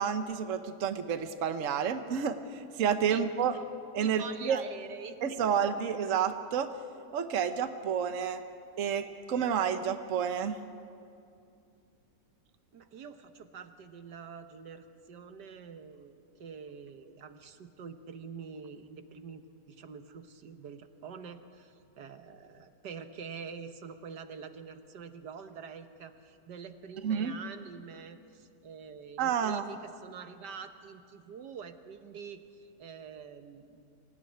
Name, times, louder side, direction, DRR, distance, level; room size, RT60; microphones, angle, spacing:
voice 1, 0.0-3.5 3.9-4.6 5.2-6.7 7.1-8.4 8.8-10.6 27.0-27.3 29.2-29.7, right 7 dB, 55° right, 8 dB, 1.2 m, -30 dB
voice 2, 4.0-5.4 12.7-33.8, right 6 dB, 75° right, 8 dB, 1.7 m, -46 dB
25.5 x 16.0 x 10.0 m, 2.6 s
omnidirectional pair, 1.8 m